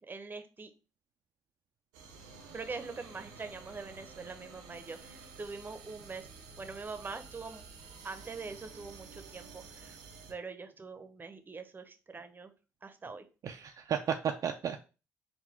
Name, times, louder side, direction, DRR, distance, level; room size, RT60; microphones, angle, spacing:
voice 1, 0.1-0.7 2.5-6.3 6.6-7.6 8.0-10.0 10.3-12.5 12.8-13.3, right 4 dB, 30° right, 9 dB, 0.7 m, -43 dB
sound 1, 1.9-10.3, right 5 dB, 90° right, 0.7 m, -51 dB
voice 2, 13.4-14.8, right 8 dB, 55° right, 5 dB, 0.4 m, -33 dB
3.8 x 2.2 x 4.4 m, 0.33 s
supercardioid pair, 65°, 7 cm